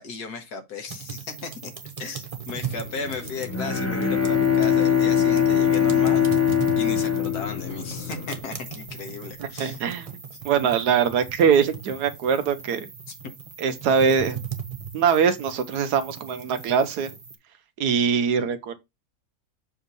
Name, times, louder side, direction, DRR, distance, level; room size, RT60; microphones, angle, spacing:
voice 1, 0.0-1.7 2.0-6.5 6.7-9.8, left 4 dB, 80° left, 1.6 m, -35 dB
sound 1, 0.9-17.3, right 7 dB, 30° right, 0.8 m, -38 dB
sound 2, 2.5-8.4, left 7 dB, 50° left, 1.0 m, -39 dB
Bowed string instrument, 3.5-8.3, left 8 dB, 10° left, 1.0 m, -22 dB
voice 2, 9.4-10.1 10.4-12.9 13.6-14.4 14.9-17.1 17.8-18.7, right 7 dB, 85° right, 1.4 m, -22 dB
7.1 x 2.8 x 5.3 m
omnidirectional pair, 1.7 m